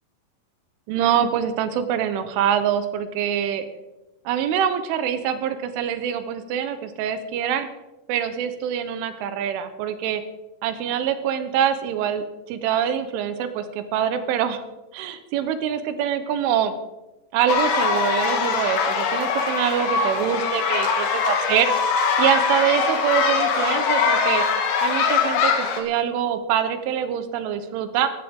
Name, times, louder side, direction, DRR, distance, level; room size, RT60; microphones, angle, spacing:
voice 1, 0.9-3.7 4.3-7.7 8.1-10.2 10.6-14.7 14.9-16.7 17.3-21.7 22.2-24.4 24.8-28.1, right 9 dB, 80° right, 10 dB, 3.5 m, -24 dB
sound 1, 17.5-25.8, left 5 dB, 65° left, 2.9 m, -22 dB
15.5 x 15.0 x 3.7 m, 1.0 s
omnidirectional pair, 5.6 m